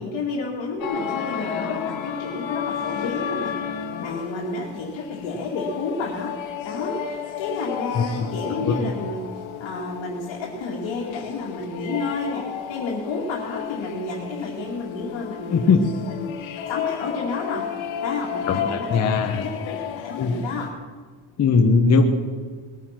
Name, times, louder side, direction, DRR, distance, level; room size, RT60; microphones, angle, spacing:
voice 1, 0.0-6.3 6.6-9.3 9.6-16.3 16.7-17.7 18.0-19.0 19.3-20.7, left 3 dB, 70° left, -3 dB, 2.5 m, -31 dB
sound 1, 0.8-20.7, left 8 dB, 90° left, 1.5 m, -32 dB
voice 2, 7.9-8.9 15.5-15.8 18.5-19.4 20.2-20.4 21.4-22.1, left 4 dB, 35° left, 3 dB, 1.0 m, -20 dB
20.5 x 9.5 x 5.9 m, 1.6 s
cardioid pair, 165°, 45 cm